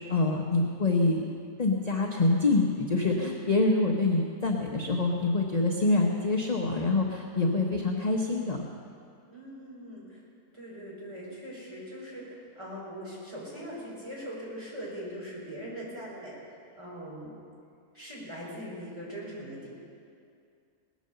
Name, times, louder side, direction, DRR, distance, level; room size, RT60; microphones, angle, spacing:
voice 1, 0.1-1.2 1.6-8.6, left 3 dB, 30° left, 1 dB, 0.9 m, -26 dB
voice 2, 9.3-10.2 10.5-16.4 16.8-17.4 17.9-19.7, equal, 20° right, -6 dB, 4.7 m, -41 dB
19.0 x 9.3 x 6.8 m, 2.4 s
omnidirectional pair, 1.6 m